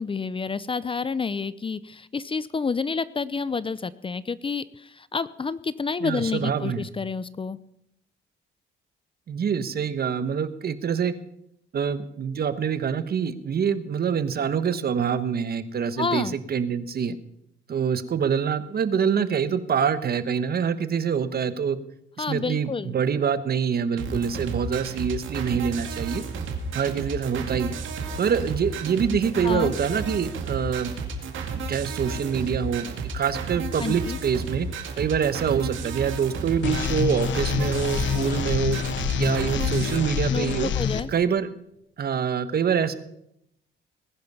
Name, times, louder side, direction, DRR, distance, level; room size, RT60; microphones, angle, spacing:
voice 1, 0.0-7.6 16.0-16.3 22.2-22.9 29.4-29.7 33.8-34.2 40.3-41.1, left 5 dB, 25° left, 17 dB, 0.6 m, -29 dB
voice 2, 6.0-6.8 9.3-11.1 11.7-17.2 17.7-21.8 22.2-26.2 26.7-27.8 28.2-30.9 31.7-34.7 35.0-38.8 39.2-40.7 41.1-41.5 42.0-42.9, right 7 dB, 50° right, 12 dB, 1.2 m, -25 dB
sound 1, 24.0-40.0, right 4 dB, 75° right, 2.3 m, -32 dB
sound 2, 36.6-41.0, left 7 dB, 70° left, 1.1 m, -26 dB
20.0 x 10.5 x 5.6 m, 0.77 s
cardioid pair, 90°, 20 cm